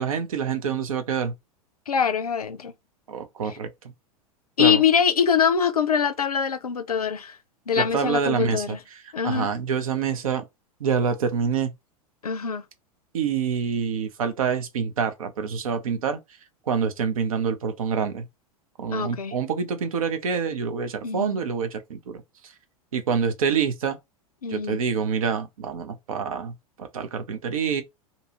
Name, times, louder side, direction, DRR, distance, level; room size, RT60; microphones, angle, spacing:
voice 1, 0.0-1.3 3.1-3.7 4.6-4.8 7.8-10.5 10.8-11.7 13.1-16.2 16.7-18.2 18.8-22.5 22.9-24.0 24.5-27.8, right 6 dB, 65° right, 0.6 m, -26 dB
voice 2, 1.9-2.7 3.4-3.5 4.6-7.4 7.7-8.8 9.1-9.5 12.2-12.6 18.9-19.3 21.0-21.4 24.4-24.8, left 7 dB, 85° left, 0.4 m, -23 dB
2.7 x 2.3 x 2.9 m
figure-of-eight pair, 90°, 19 cm